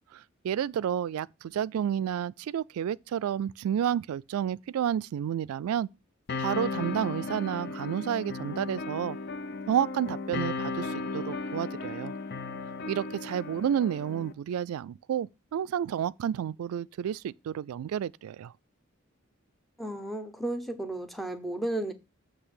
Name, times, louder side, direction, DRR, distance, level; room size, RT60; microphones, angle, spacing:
voice 1, 0.1-5.9 6.4-9.2 9.7-12.1 12.9-18.5, right 9 dB, 85° right, 0.3 m, -30 dB
sound 1, 6.3-14.3, left 3 dB, 50° left, 0.5 m, -35 dB
voice 2, 19.8-21.9, right 1 dB, ahead, 0.7 m, -33 dB
7.9 x 3.3 x 6.2 m
head